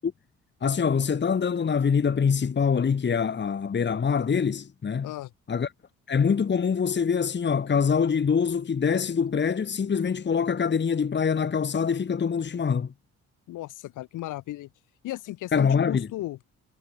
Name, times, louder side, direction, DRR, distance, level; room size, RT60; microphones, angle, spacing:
voice 1, 0.6-5.1 5.5-5.7 6.1-12.9 15.5-16.1, left 6 dB, 35° left, 1.9 m, -24 dB
voice 2, 13.5-14.7 15.0-16.4, left 15 dB, 90° left, 5.9 m, -35 dB
cardioid pair, 90°, 30 cm